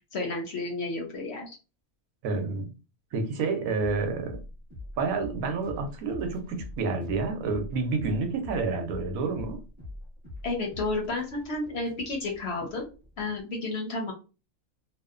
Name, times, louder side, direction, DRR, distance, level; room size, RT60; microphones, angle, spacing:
voice 1, 0.1-1.6 10.4-12.9 13.2-14.1, left 2 dB, 60° left, 0.7 m, -31 dB
voice 2, 2.2-2.7 3.1-4.4 5.0-9.6, right 4 dB, 80° right, 1.0 m, -29 dB
sound 1, 3.8-13.4, left 1 dB, 10° right, 0.6 m, -44 dB
2.7 x 2.1 x 2.3 m
omnidirectional pair, 1.5 m